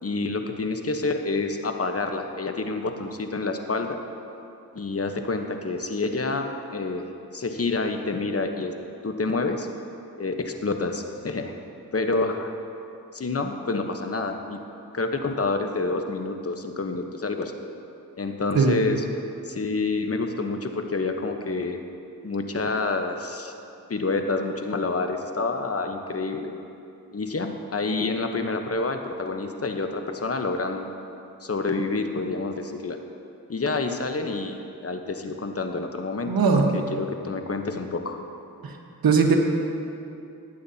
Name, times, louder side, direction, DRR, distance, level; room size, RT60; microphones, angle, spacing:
voice 1, 0.0-4.0 4.7-8.7 9.0-9.7 10.2-11.5 11.9-12.5 13.1-14.6 14.9-17.5 18.2-19.0 19.4-21.8 22.2-23.5 23.9-26.5 27.1-30.9 31.4-33.0 33.5-36.3 36.7-38.2, left 3 dB, 40° left, 5 dB, 1.0 m, -28 dB
voice 2, 36.3-36.8 38.6-38.8 39.0-39.4, right 4 dB, 75° right, 2 dB, 1.3 m, -19 dB
19.0 x 8.7 x 2.8 m, 2.7 s
cardioid pair, 45°, 36 cm